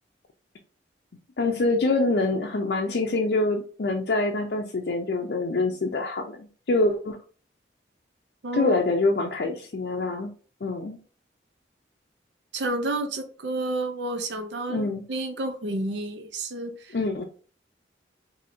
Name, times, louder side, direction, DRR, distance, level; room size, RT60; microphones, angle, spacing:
voice 1, 1.4-7.2 8.5-10.3 10.6-11.0 14.7-15.0 16.9-17.2, left 2 dB, 60° left, 1 dB, 0.5 m, -25 dB
voice 2, 8.4-8.8 12.5-17.0, right 2 dB, 80° right, 6 dB, 0.6 m, -30 dB
4.2 x 2.7 x 2.6 m, 0.40 s
head